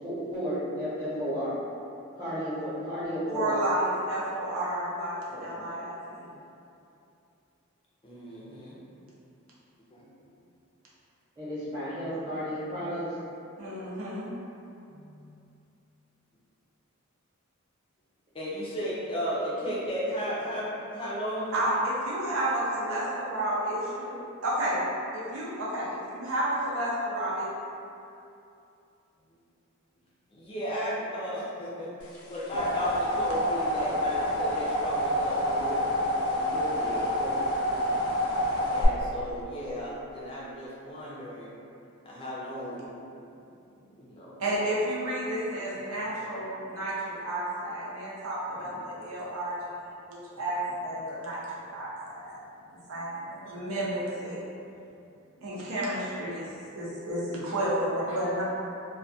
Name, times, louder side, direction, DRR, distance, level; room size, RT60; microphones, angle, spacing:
voice 1, 0.0-1.6 2.2-3.6 5.3-5.6 11.4-13.1 14.9-15.3 37.1-37.8 48.6-48.7 53.5-53.6, equal, 20° right, -13 dB, 0.9 m, -34 dB
voice 2, 3.3-6.3 13.6-14.3 21.5-24.8 25.1-27.5 44.4-51.4 51.7-52.4 52.9-54.4 55.4-58.4, right 1 dB, 85° right, -7 dB, 0.6 m, -31 dB
voice 3, 8.0-8.8 9.9-10.3 18.3-21.6 30.3-31.9 32.3-35.8 36.3-37.1 38.7-41.5 42.1-42.9 44.0-44.3, equal, 25° left, -7 dB, 0.4 m, -34 dB
sound 1, 32.1-38.8, equal, 80° left, 0.4 m, -28 dB
2.3 x 2.2 x 2.6 m, 2.7 s
head